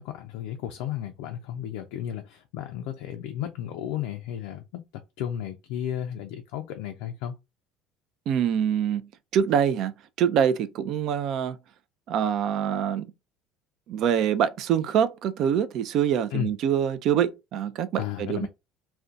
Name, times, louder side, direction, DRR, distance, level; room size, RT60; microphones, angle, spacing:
voice 1, 0.0-7.3 16.3-16.5 18.0-18.5, left 10 dB, 70° left, 0.3 m, -33 dB
voice 2, 8.3-9.0 9.3-9.9 10.2-11.6 12.1-13.0 13.9-18.5, right 8 dB, 60° right, 0.3 m, -25 dB
2.4 x 2.2 x 2.5 m
hypercardioid pair, 75°, 0 cm